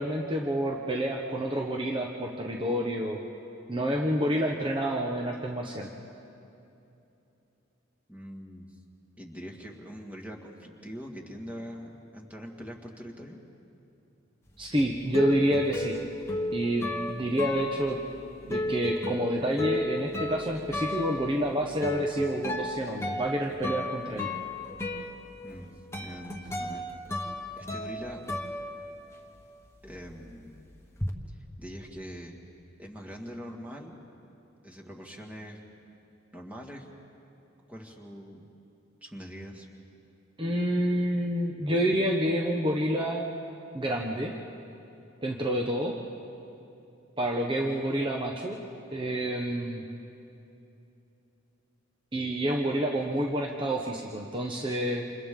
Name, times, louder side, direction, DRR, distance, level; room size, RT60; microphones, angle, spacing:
voice 1, 0.0-3.2 3.7-5.9 14.6-15.9 16.5-18.0 18.5-24.3 40.4-43.3 43.7-44.3 45.2-46.0 47.2-48.6 48.9-49.8 52.1-55.1, equal, 25° right, 0 dB, 1.1 m, -28 dB
voice 2, 8.1-8.8 9.2-13.4 25.4-25.7 26.0-26.9 27.6-28.2 29.8-30.6 31.3-32.4 32.8-34.0 34.6-35.6 36.3-36.9 37.7-38.5 39.0-39.7, equal, 5° right, -1 dB, 1.9 m, -43 dB
sound 1, 14.6-29.4 29.7-31.1, left 1 dB, 15° left, 1.3 m, -34 dB
29.0 x 27.5 x 3.8 m, 2.8 s
head